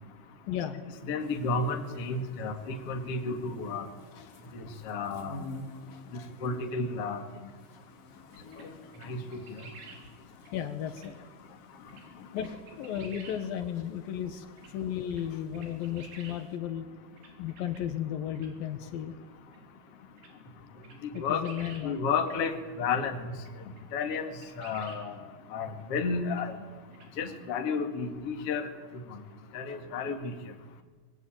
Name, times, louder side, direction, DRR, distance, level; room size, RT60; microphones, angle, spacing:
voice 1, 0.5-0.8 4.1-4.7 5.9-6.3 10.5-11.2 12.3-16.9 17.4-19.1 21.1-22.0, left 10 dB, 75° left, 8 dB, 3.0 m, -35 dB
voice 2, 1.1-3.9 4.5-5.4 6.4-7.2 8.6-8.7 9.0-9.4 21.2-21.4 21.8-23.3 23.9-24.3 24.6-25.1 25.5-26.6 27.2-28.7 29.5-30.3, left 4 dB, 45° left, 6 dB, 2.6 m, -32 dB
sound 1, 1.2-16.6, left 1 dB, 25° left, 2.6 m, -52 dB
sound 2, 8.3-8.7 8.9-10.0 10.5-10.6 11.0-11.1 11.9-12.0 12.4-13.4 14.6-14.7 15.1-15.2 15.5-16.4 17.2-17.8 18.4-18.5 19.5-19.6 20.2-20.3 20.8-21.9 22.3-22.4 22.8-23.0 23.5-23.6 23.8-23.9 24.1-25.0 26.3-26.4 26.9-27.1, right 4 dB, 85° right, 5.7 m, -50 dB
24.0 x 22.0 x 8.9 m, 1.3 s
omnidirectional pair, 4.3 m